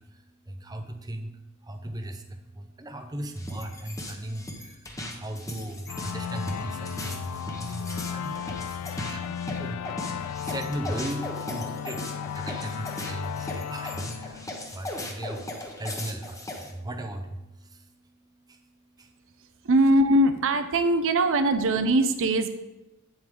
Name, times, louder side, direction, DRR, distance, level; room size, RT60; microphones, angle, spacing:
voice 1, 0.5-1.3 1.7-2.2 2.6-4.5 5.2-8.3 8.8-9.3 9.6-9.8 10.2-14.4 14.7-15.4 15.8-17.4, right 1 dB, 15° right, 5 dB, 0.7 m, -36 dB
sound 1, 3.3-16.7, left 1 dB, 15° left, 1.1 m, -38 dB
sound 2, 5.9-15.2, left 8 dB, 80° left, 0.3 m, -35 dB
voice 2, 19.6-22.5, right 1 dB, 60° right, 8 dB, 0.6 m, -21 dB
8.7 x 7.8 x 3.8 m, 0.99 s
head